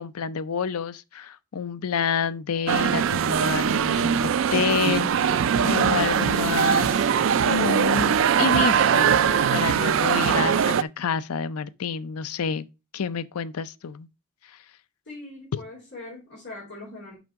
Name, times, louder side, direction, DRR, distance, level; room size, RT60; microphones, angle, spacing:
voice 1, 0.0-7.1 7.4-9.1 9.5-12.7 12.9-14.1 14.5-14.6, left 6 dB, 90° left, 0.5 m, -28 dB
sound 1, 2.7-10.8, right 7 dB, 60° right, 0.3 m, -21 dB
sound 2, 5.5-10.8, left 3 dB, 20° left, 0.7 m, -43 dB
voice 2, 15.1-17.2, left 2 dB, 50° left, 3.8 m, -41 dB
6.1 x 6.0 x 4.6 m
head